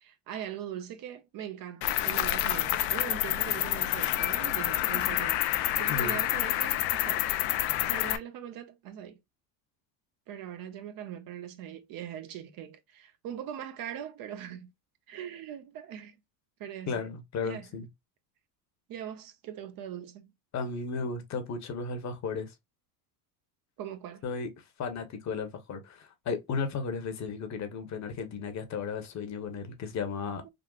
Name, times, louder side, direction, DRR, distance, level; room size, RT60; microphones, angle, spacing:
voice 1, 0.0-7.3 7.8-9.2 10.3-14.7 15.1-16.2 16.6-17.1 17.4-17.8 18.9-20.3 23.8-24.3 30.4-30.5, right 10 dB, 50° right, 0.6 m, -41 dB
Cricket, 1.8-8.2, left 14 dB, 65° left, 0.6 m, -28 dB
voice 2, 16.9-17.9 20.5-22.5 24.2-24.5 24.8-30.5, left 5 dB, 35° left, 0.9 m, -34 dB
3.7 x 2.3 x 2.3 m
supercardioid pair, 115°, 46 cm